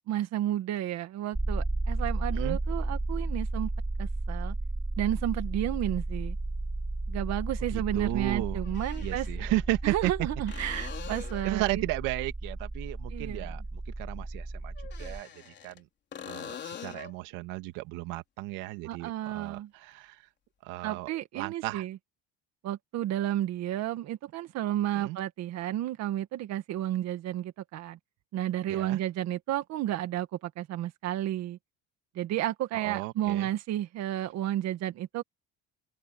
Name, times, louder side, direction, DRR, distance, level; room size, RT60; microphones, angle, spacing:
voice 1, 0.1-3.7 4.0-4.6 5.0-6.4 7.1-9.3 9.8-11.8 13.1-13.5 18.9-19.7 20.8-22.0 22.6-28.0 28.3-31.6 32.2-35.2, right 13 dB, 55° right, 1.9 m, -32 dB
sound 1, 1.3-15.2, right 2 dB, 10° right, 3.2 m, -33 dB
sound 2, 5.1-5.2 7.3-7.4 8.6-9.4 10.5-11.6 14.8-15.8 16.1-17.2 20.8-20.9, left 8 dB, 35° left, 3.9 m, -43 dB
voice 2, 7.7-8.6 9.0-10.1 10.5-10.7 11.4-15.9 16.2-20.3 20.6-21.1 21.3-21.8 24.9-25.2 28.7-29.0 32.8-33.5, right 19 dB, 85° right, 2.2 m, -34 dB
open air
cardioid pair, 155°, 32 cm